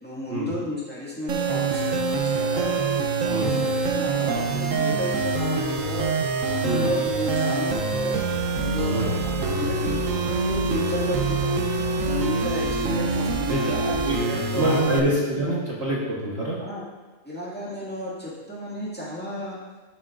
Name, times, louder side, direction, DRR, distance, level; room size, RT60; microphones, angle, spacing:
voice 1, 0.0-2.8 3.2-6.1 6.5-8.2 8.5-11.6 12.0-14.8 16.6-16.8 17.2-19.6, left 1 dB, 5° left, -7 dB, 1.8 m, -33 dB
sound 1, 1.3-15.0, right 3 dB, 65° right, 1.1 m, -25 dB
voice 2, 14.5-16.6, right 1 dB, 50° right, -5 dB, 1.4 m, -25 dB
12.0 x 6.3 x 2.5 m, 1.3 s
omnidirectional pair, 1.6 m